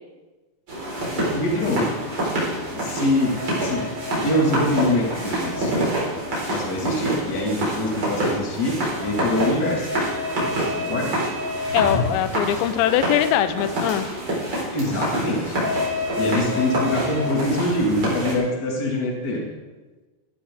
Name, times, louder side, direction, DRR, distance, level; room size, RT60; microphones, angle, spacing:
sound 1, 0.7-18.3, equal, 30° right, 4.9 m, -26 dB
voice 1, 1.1-1.9 2.7-5.9 6.5-9.9 10.7-11.1 14.7-15.5 16.1-19.5, left 1 dB, 60° left, -1 dB, 1.0 m, -24 dB
voice 2, 11.7-14.1, left 11 dB, 85° left, 10 dB, 3.0 m, -22 dB
17.5 x 15.0 x 3.6 m, 1.2 s
omnidirectional pair, 5.2 m